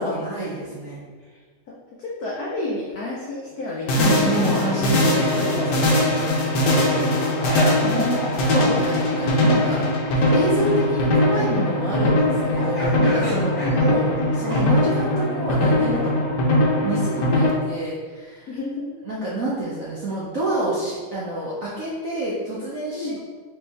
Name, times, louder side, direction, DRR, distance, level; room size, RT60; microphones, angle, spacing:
voice 1, 0.0-1.0 4.0-6.0 7.8-9.8 10.3-16.2 16.8-18.5 19.1-23.2, right 1 dB, 90° right, -7 dB, 0.7 m, -28 dB
voice 2, 1.7-4.6 5.1-5.8 6.6-7.3 10.5-10.9 13.3-13.8 18.5-18.9 22.9-23.2, left 2 dB, 90° left, -4 dB, 0.8 m, -33 dB
sound 1, 3.9-17.5, left 1 dB, 65° left, 1.1 m, -21 dB
sound 2, 7.0-8.8 9.1-9.2 12.5-14.9, equal, 25° left, 1.0 m, -32 dB
4.4 x 3.0 x 3.5 m, 1.5 s
omnidirectional pair, 2.4 m